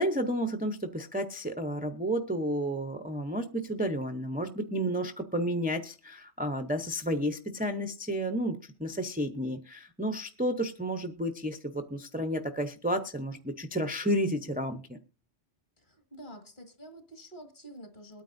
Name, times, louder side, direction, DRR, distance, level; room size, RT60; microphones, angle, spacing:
voice 1, 0.0-15.0, equal, 10° right, 4 dB, 0.5 m, -31 dB
voice 2, 15.8-18.2, right 1 dB, 45° left, 6 dB, 2.0 m, -48 dB
22.0 x 9.1 x 2.6 m, 0.36 s
omnidirectional pair, 1.2 m